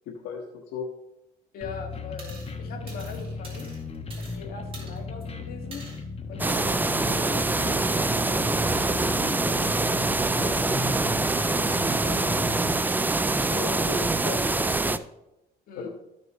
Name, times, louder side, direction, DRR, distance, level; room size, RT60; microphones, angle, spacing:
voice 1, 0.0-0.9 13.5-15.0 15.8-15.9, left 5 dB, 85° left, 0 dB, 1.4 m, -36 dB
voice 2, 1.5-3.7 4.2-5.8 6.3-12.9 15.7-15.9, left 4 dB, 60° left, 2 dB, 2.0 m, -42 dB
sound 1, 1.6-12.8, left 4 dB, 35° left, 1.2 m, -36 dB
sound 2, 2.2-2.5 2.9-4.4 4.7-5.2 5.7-6.0 6.5-6.7 7.3-7.5, right 3 dB, 35° right, 3.8 m, -46 dB
sound 3, 6.4-15.0, right 3 dB, 10° right, 0.4 m, -25 dB
13.5 x 6.7 x 3.1 m, 0.89 s
cardioid pair, 110°, 17 cm